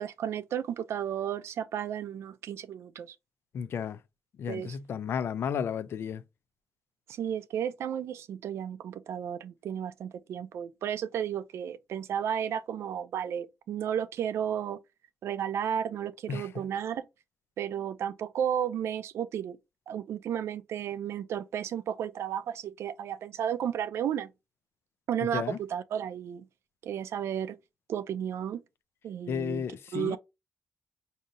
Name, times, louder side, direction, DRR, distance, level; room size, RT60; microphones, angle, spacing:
voice 1, 0.0-3.2 4.5-4.8 7.1-14.8 15.2-17.1 17.6-19.6 19.9-24.3 25.1-26.4 26.8-27.6 27.9-28.6 29.0-29.6 29.9-30.2, right 9 dB, 85° right, 0.4 m, -33 dB
voice 2, 3.5-4.0 4.4-6.2 16.3-16.5 25.3-25.6 29.3-30.2, left 7 dB, 65° left, 0.3 m, -33 dB
4.8 x 2.7 x 2.6 m
wide cardioid pair, 125°, 4 cm